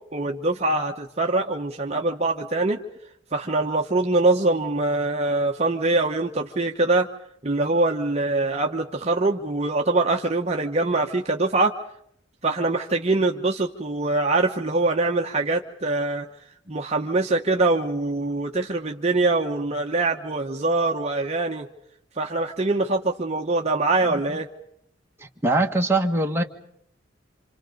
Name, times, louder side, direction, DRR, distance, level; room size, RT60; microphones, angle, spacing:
voice 1, 0.1-2.8 3.3-7.1 7.4-11.7 12.4-16.3 16.7-21.7 22.2-24.5, right 2 dB, 35° right, 1 dB, 1.1 m, -23 dB
voice 2, 24.0-24.4 25.2-26.4, right 2 dB, 15° right, 1 dB, 1.7 m, -23 dB
28.0 x 27.0 x 5.3 m, 0.70 s
head